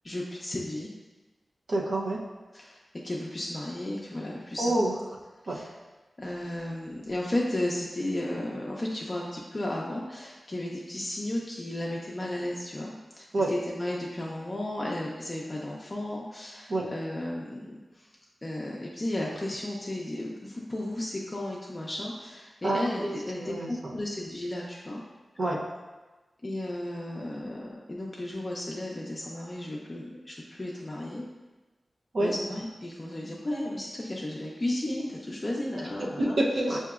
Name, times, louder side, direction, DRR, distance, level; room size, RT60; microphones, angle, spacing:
voice 1, 0.0-0.9 2.5-2.8 3.0-4.8 5.4-5.7 6.2-18.1 18.4-25.0 26.4-31.2 32.2-36.4, left 1 dB, 30° left, -3 dB, 0.5 m, -34 dB
voice 2, 1.7-2.2 4.6-4.9 5.5-5.6 13.3-13.5 16.7-16.9 22.6-23.7 25.4-25.6 32.1-32.3 36.0-36.8, right 1 dB, 65° right, -3 dB, 0.6 m, -27 dB
5.8 x 2.8 x 2.4 m, 1.2 s
wide cardioid pair, 75°, 0 cm